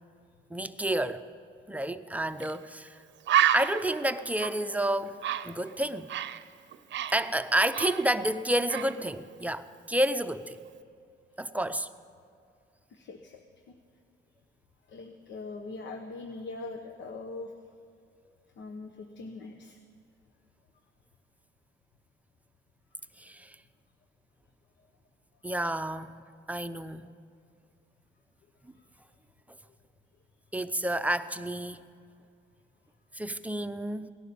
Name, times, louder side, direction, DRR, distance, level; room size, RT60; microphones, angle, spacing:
voice 1, 0.5-1.2 1.7-3.0 3.5-6.1 7.1-10.6 11.4-11.9 23.2-23.6 25.4-26.1 26.5-27.1 30.5-31.8 33.1-34.1, right 1 dB, 5° right, 10 dB, 0.6 m, -30 dB
Bird, 2.4-2.6 2.9-3.0 3.3-6.4 6.7-8.4 8.7-9.0, right 11 dB, 65° right, 0.7 m, -30 dB
voice 2, 12.9-13.4 14.9-17.5 18.6-19.8, left 3 dB, 70° left, 5 dB, 1.1 m, -41 dB
18.0 x 11.5 x 6.9 m, 2.4 s
cardioid pair, 90°, 20 cm